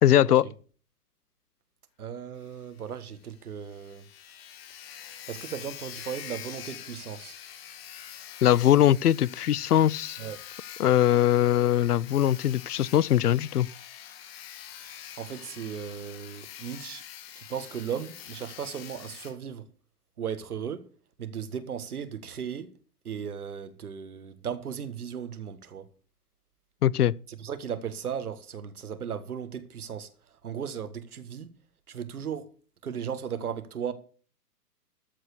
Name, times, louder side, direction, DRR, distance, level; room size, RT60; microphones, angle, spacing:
voice 1, 0.0-0.4 8.4-10.2 10.8-13.7 26.8-27.1, left 11 dB, 75° left, 0.6 m, -21 dB
voice 2, 2.0-4.0 5.3-7.4 10.2-10.4 15.2-17.0 17.3-19.7 20.2-20.9 21.2-22.7 23.0-25.9 27.3-30.1 30.4-31.5 31.9-32.5 32.8-33.9, right 7 dB, 65° right, 1.6 m, -36 dB
Sawing, 2.4-2.5 2.8-2.9 3.3-3.4 3.6-19.3, left 10 dB, 40° left, 2.2 m, -45 dB
13.5 x 4.7 x 8.1 m
figure-of-eight pair, 125°, 47 cm